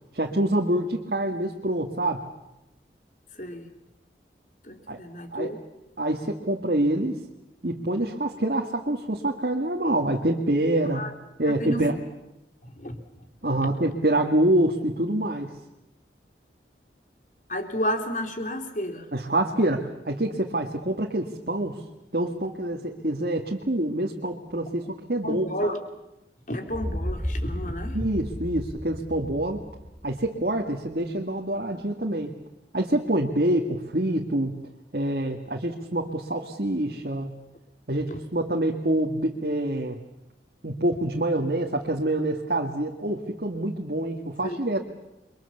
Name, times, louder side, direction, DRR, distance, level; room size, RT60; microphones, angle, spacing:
voice 1, 0.1-2.3 4.9-5.0 5.3-5.5 6.0-7.2 7.6-11.1 11.4-12.0 13.4-15.5 19.1-21.8 22.1-25.7 27.9-29.6 30.0-32.3 32.7-34.6 34.9-37.4 37.9-40.0 40.6-44.8, right 1 dB, 55° right, 1 dB, 2.1 m, -26 dB
voice 2, 3.3-3.7 4.6-5.6 10.9-11.1 11.5-11.9 12.6-13.0 17.5-19.1 25.2-25.8 26.5-28.1 38.1-38.2 44.4-44.6, equal, 45° left, 6 dB, 3.1 m, -31 dB
sound 1, 26.7-30.5, equal, 10° right, 3.2 m, -33 dB
29.5 x 24.0 x 7.2 m, 0.88 s
head